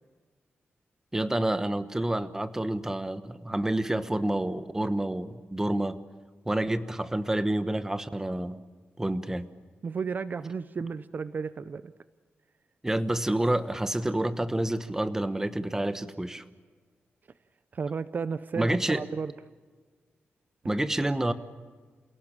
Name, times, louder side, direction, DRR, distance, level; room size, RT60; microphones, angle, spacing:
voice 1, 1.1-6.0 6.4-8.6 9.0-9.5 12.8-16.4 18.6-19.0 20.6-21.3, right 1 dB, 10° right, 12 dB, 1.1 m, -28 dB
voice 2, 9.8-11.9 17.7-19.3, right 5 dB, 45° right, 14 dB, 0.6 m, -33 dB
28.5 x 17.5 x 8.7 m, 1.5 s
wide cardioid pair, 140°, 4 cm